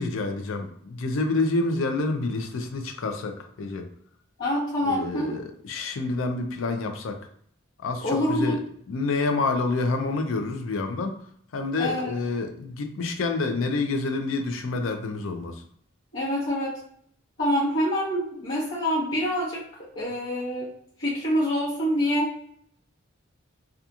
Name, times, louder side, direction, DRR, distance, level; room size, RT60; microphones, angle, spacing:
voice 1, 0.0-3.9 4.8-7.2 7.8-8.6 8.9-11.2 11.5-15.6, left 3 dB, 80° left, 6 dB, 0.4 m, -28 dB
voice 2, 4.4-5.3 8.0-8.6 11.8-12.1 16.1-16.8 17.4-19.6 19.9-20.7 21.0-22.3, equal, 65° left, -12 dB, 1.0 m, -26 dB
2.8 x 2.4 x 2.3 m, 0.64 s
head